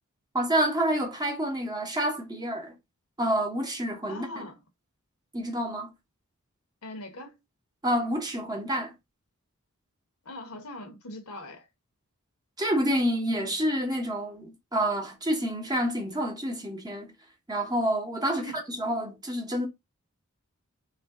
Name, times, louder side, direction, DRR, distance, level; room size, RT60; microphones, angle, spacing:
voice 1, 0.3-2.8 3.2-4.5 5.3-5.9 7.8-8.9 12.6-17.1 17.5-19.7, equal, 20° right, 0.8 m, -28 dB
voice 2, 4.1-4.6 6.8-7.4 10.2-11.7 18.3-18.6, left 1 dB, 75° left, 0.9 m, -41 dB
3.0 x 2.5 x 3.5 m
head